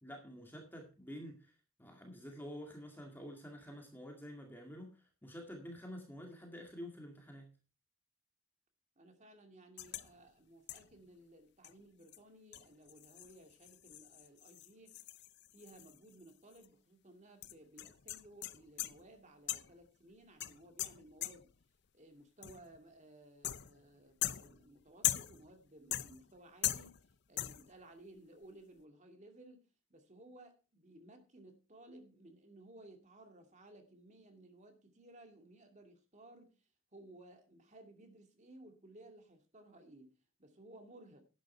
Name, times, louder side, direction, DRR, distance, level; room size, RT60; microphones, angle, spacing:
voice 1, 0.0-7.5, equal, 10° left, 2.1 m, -49 dB
voice 2, 9.0-15.0 15.5-21.5 21.9-36.6 36.9-41.3, right 1 dB, 35° right, 2.3 m, -58 dB
sound 1, 9.8-10.1 10.7-11.0 11.6-11.7 12.1-12.2 12.5-16.3 16.6-16.7 17.4-19.1 19.5-19.9 20.4-21.6 22.4-22.8 23.4-23.9 24.2-25.5 25.9-26.4 26.6-27.1 27.4-27.8, left 14 dB, 55° left, 0.6 m, -40 dB
11.5 x 9.4 x 4.4 m
head